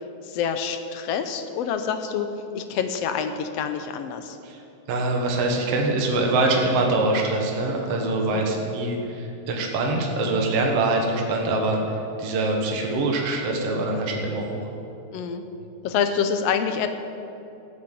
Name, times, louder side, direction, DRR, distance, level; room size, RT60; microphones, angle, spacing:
voice 1, 0.2-4.4 8.3-8.5 15.1-15.4 15.8-16.9, left 7 dB, 75° left, 8 dB, 1.6 m, -27 dB
voice 2, 4.9-11.8 12.2-14.6, right 2 dB, 60° right, 1 dB, 2.3 m, -24 dB
14.0 x 7.9 x 9.0 m, 2.8 s
omnidirectional pair, 3.4 m